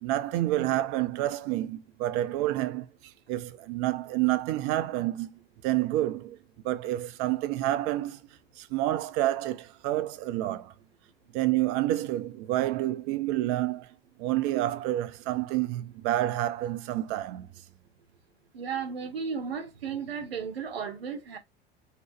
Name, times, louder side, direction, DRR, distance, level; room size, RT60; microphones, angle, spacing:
voice 1, 0.0-5.3 5.6-6.4 6.6-8.2 8.6-10.7 11.3-13.9 14.2-17.5, right 14 dB, 45° right, 0.4 m, -29 dB
voice 2, 18.5-21.4, right 6 dB, 75° right, 0.7 m, -34 dB
2.8 x 2.0 x 3.1 m
figure-of-eight pair, 70°, 31 cm